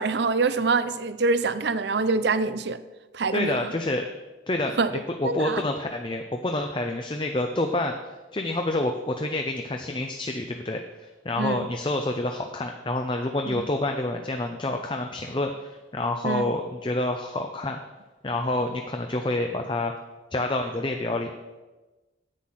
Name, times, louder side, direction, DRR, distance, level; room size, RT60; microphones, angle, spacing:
voice 1, 0.0-2.8 3.1-3.6 4.8-4.9 5.2-5.6 11.4-11.7 13.5-13.6 16.2-16.4, right 4 dB, 65° right, 13 dB, 0.6 m, -25 dB
voice 2, 3.3-4.1 4.5-17.8 18.2-19.9 20.3-21.3, left 2 dB, 25° left, 4 dB, 0.6 m, -28 dB
9.7 x 8.1 x 5.8 m, 1.1 s
head